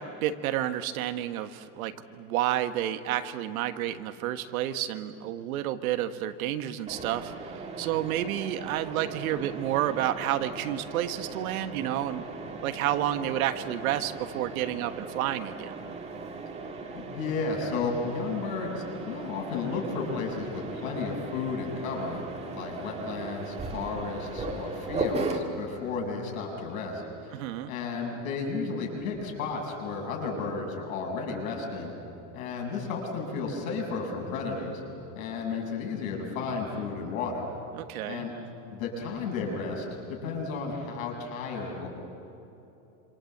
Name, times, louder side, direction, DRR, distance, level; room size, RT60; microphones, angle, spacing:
voice 1, 0.0-12.2 12.6-15.8 27.3-27.7 37.7-38.3, right 12 dB, 70° right, 9 dB, 1.6 m, -30 dB
Mechanisms, 6.9-25.4, right 3 dB, 15° right, 1.9 m, -38 dB
voice 2, 16.9-22.2 22.5-27.4 27.7-31.9 32.3-34.8 35.2-37.5 38.1-38.3 38.7-41.9, left 4 dB, 60° left, 0 dB, 7.5 m, -33 dB
27.5 x 27.0 x 8.0 m, 3.0 s
supercardioid pair, 165°, 44 cm